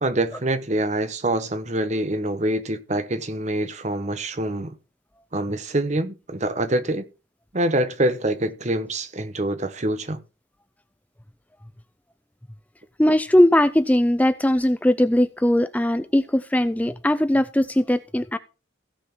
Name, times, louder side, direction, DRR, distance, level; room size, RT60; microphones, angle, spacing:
voice 1, 0.0-4.7 5.3-7.1 7.5-10.2, right 1 dB, 40° right, 1.0 m, -25 dB
voice 2, 13.0-18.4, left 1 dB, 10° left, 0.4 m, -19 dB
16.0 x 5.9 x 4.4 m
head